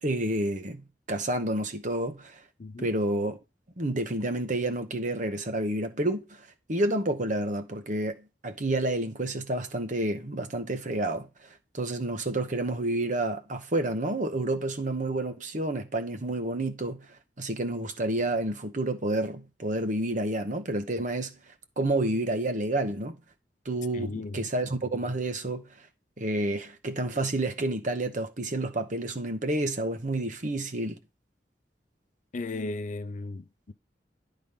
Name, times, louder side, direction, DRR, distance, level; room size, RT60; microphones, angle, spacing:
voice 1, 0.0-0.8 1.1-2.4 2.8-3.4 3.8-6.4 6.7-11.5 11.7-17.0 17.4-21.3 21.8-23.1 23.6-25.6 26.2-31.0, right 1 dB, 45° right, 1.2 m, -29 dB
voice 2, 2.6-2.9 23.9-24.4 32.3-33.7, left 3 dB, 45° left, 0.5 m, -36 dB
11.5 x 3.9 x 5.2 m
head